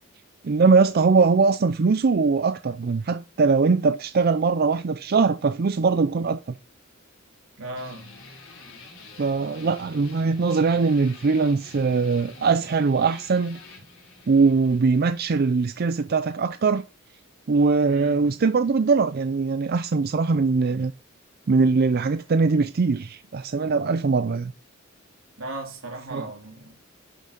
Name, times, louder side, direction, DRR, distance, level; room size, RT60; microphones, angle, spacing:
voice 1, 0.4-6.6 9.2-13.6 14.3-16.8 17.5-20.9 21.5-24.5 26.1-26.2, right 4 dB, 50° right, 0.5 m, -21 dB
voice 2, 7.6-8.1 17.8-18.3 25.4-26.8, right 2 dB, 80° right, 3.2 m, -36 dB
sound 1, 7.8-16.8, left 3 dB, 80° left, 4.5 m, -47 dB
11.5 x 6.0 x 5.2 m
head